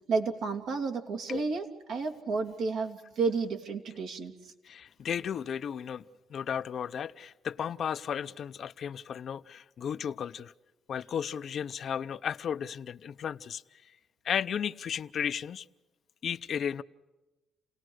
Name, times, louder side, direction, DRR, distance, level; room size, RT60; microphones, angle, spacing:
voice 1, 0.1-4.5, right 4 dB, 75° right, 3 dB, 3.0 m, -31 dB
voice 2, 4.6-6.0 6.3-10.5 10.9-13.9 14.2-15.7 16.2-16.8, left 8 dB, 60° left, 11 dB, 0.7 m, -34 dB
30.0 x 18.0 x 6.4 m, 1.1 s
cardioid pair, 90°, 0 cm